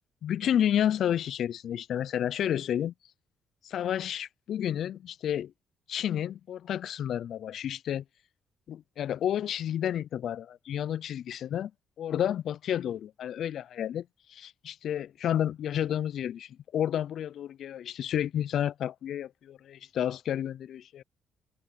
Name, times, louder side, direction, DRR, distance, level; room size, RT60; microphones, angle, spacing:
voice 1, 0.2-2.9 3.6-5.5 5.9-8.0 8.7-11.7 12.0-21.0, left 10 dB, 70° left, 0.3 m, -31 dB
cardioid pair, 85°, 0 cm